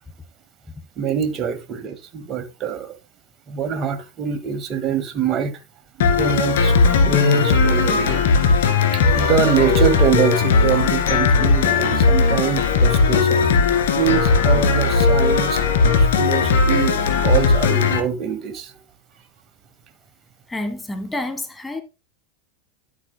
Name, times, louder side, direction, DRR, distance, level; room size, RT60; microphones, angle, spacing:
voice 1, 1.0-3.0 3.5-5.6 6.0-6.8 7.1-8.3 8.9-13.5 13.9-15.6 16.0-18.7, right 7 dB, 35° right, 1.8 m, -24 dB
sound 1, 6.0-18.0, left 4 dB, 80° left, 2.1 m, -17 dB
voice 2, 20.5-21.8, left 2 dB, 10° left, 1.3 m, -28 dB
11.0 x 8.6 x 2.2 m
hypercardioid pair, 110°, 0 cm